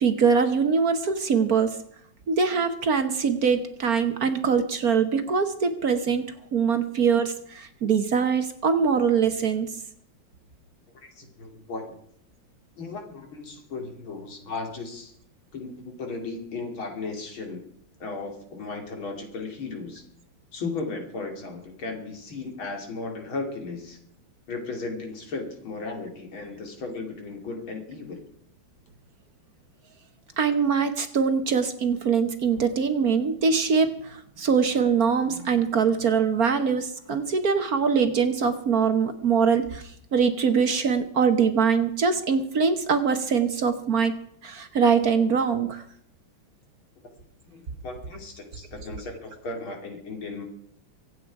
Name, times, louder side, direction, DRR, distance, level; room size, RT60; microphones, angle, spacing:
voice 1, 0.0-1.8 2.3-6.2 6.5-9.7 30.4-39.8 40.1-44.1 44.4-45.8, right 6 dB, 50° right, 9 dB, 1.4 m, -23 dB
voice 2, 10.9-12.0 12.8-15.2 15.5-17.6 18.0-20.1 20.5-24.0 24.5-28.2 47.5-50.4, left 3 dB, 80° left, 4 dB, 3.7 m, -35 dB
25.0 x 8.8 x 4.7 m, 0.68 s
omnidirectional pair, 2.2 m